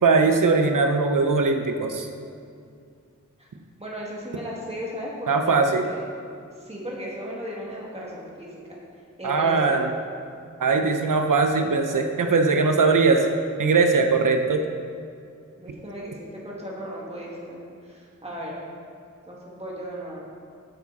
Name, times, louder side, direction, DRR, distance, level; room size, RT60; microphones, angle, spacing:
voice 1, 0.0-2.1 5.3-5.9 9.2-9.9 10.6-13.2 13.6-14.6, right 4 dB, 90° right, 5 dB, 0.8 m, -20 dB
voice 2, 3.8-6.0 6.6-8.8 9.2-9.8 15.6-18.6 19.3-20.3, equal, 20° right, -5 dB, 2.3 m, -36 dB
10.0 x 7.2 x 4.2 m, 2.4 s
wide cardioid pair, 75°, 31 cm